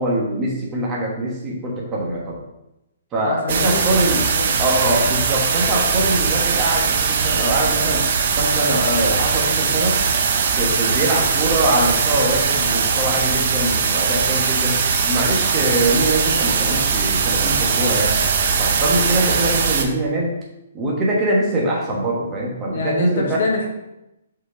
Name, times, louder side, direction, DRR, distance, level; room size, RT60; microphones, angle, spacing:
voice 1, 0.0-2.4 3.1-4.2 4.6-8.1 8.3-10.0 10.5-14.8 15.0-18.2 18.6-20.3 20.7-23.4, right 1 dB, 25° right, -3 dB, 1.3 m, -23 dB
voice 2, 3.2-4.6 22.7-23.7, left 3 dB, 65° left, 1 dB, 1.1 m, -26 dB
sound 1, 3.5-19.8, right 5 dB, 55° right, 0.8 m, -20 dB
5.0 x 4.4 x 5.0 m, 0.91 s
figure-of-eight pair, 130°, 0 cm